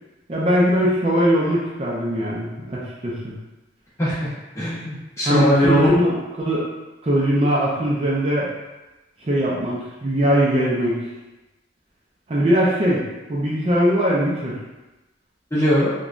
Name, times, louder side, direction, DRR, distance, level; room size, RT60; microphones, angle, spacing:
voice 1, 0.3-3.3 5.2-6.6 7.0-8.5 9.2-11.0 12.3-13.0 13.3-14.5, equal, 35° right, -6 dB, 0.4 m, -20 dB
voice 2, 4.0-4.3 4.5-5.9 15.5-15.9, equal, 15° left, -10 dB, 0.8 m, -19 dB
3.0 x 2.2 x 2.4 m, 1.1 s
head